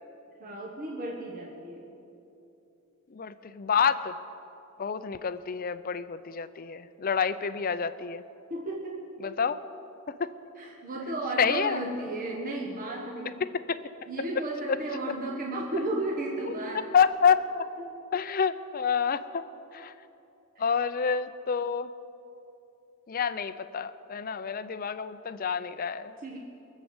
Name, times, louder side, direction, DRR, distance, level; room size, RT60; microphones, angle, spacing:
voice 1, 0.4-1.9 8.5-9.1 10.6-13.4 14.0-16.9 17.8-17.9 26.2-26.4, right 2 dB, 40° right, -1 dB, 1.4 m, -34 dB
voice 2, 3.1-4.2 4.8-8.2 9.2-9.6 10.1-10.3 11.4-11.8 13.4-13.8 14.7-14.8 16.4-17.7 18.1-19.4 19.7-19.9 20.6-21.9 23.1-26.1, left 6 dB, 45° left, 13 dB, 0.5 m, -28 dB
22.5 x 7.4 x 8.0 m, 2.8 s
head